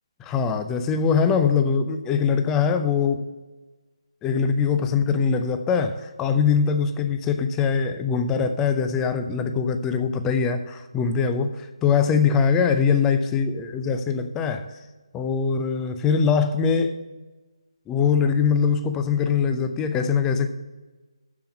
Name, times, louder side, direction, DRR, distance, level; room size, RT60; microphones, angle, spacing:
voice 1, 0.2-3.2 4.2-14.7 15.1-16.9 17.9-20.5, left 6 dB, 10° left, 8 dB, 0.4 m, -22 dB
6.9 x 6.8 x 5.5 m, 1.2 s
figure-of-eight pair, 150°, 3 cm